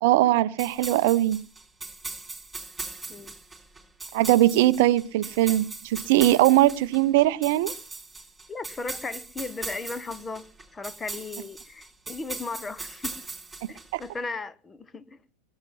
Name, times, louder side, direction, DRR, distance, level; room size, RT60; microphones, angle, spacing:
voice 1, 0.0-1.4 4.1-7.7 13.9-14.0, right 15 dB, 50° right, 0.7 m, -21 dB
sound 1, 0.6-14.1, right 3 dB, 5° right, 3.5 m, -39 dB
voice 2, 8.5-13.2 13.7-15.3, left 3 dB, 15° left, 1.0 m, -36 dB
22.0 x 9.7 x 5.6 m
figure-of-eight pair, 90°, 0 cm